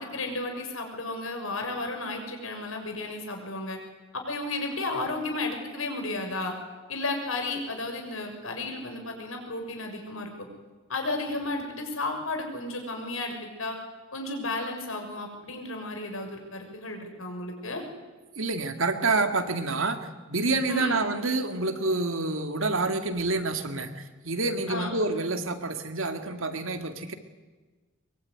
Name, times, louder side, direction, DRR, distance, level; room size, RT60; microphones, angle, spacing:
voice 1, 0.0-3.8 4.1-6.5 6.9-10.3 10.9-13.8 14.1-17.8 20.7-21.0 24.7-25.0, left 2 dB, 80° left, 4 dB, 6.4 m, -33 dB
voice 2, 18.4-20.0 20.3-27.1, right 3 dB, 75° right, 7 dB, 2.3 m, -28 dB
23.0 x 23.0 x 9.7 m, 1.3 s
head